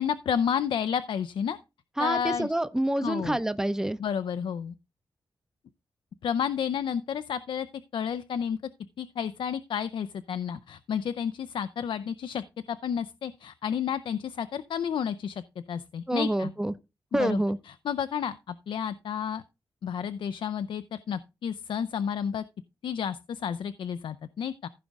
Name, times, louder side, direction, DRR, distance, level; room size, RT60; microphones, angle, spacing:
voice 1, 0.0-1.6 2.0-2.5 3.0-3.4 4.0-4.7 6.2-7.7 7.9-8.6 9.0-15.4 15.7-16.5 17.2-17.4 17.7-19.4 19.8-22.4 22.8-24.7, left 8 dB, 85° left, 0.5 m, -31 dB
voice 2, 2.0-4.0 16.1-16.7 17.1-17.6, right 1 dB, 5° right, 0.5 m, -27 dB
15.0 x 5.1 x 3.5 m
wide cardioid pair, 110°, 8 cm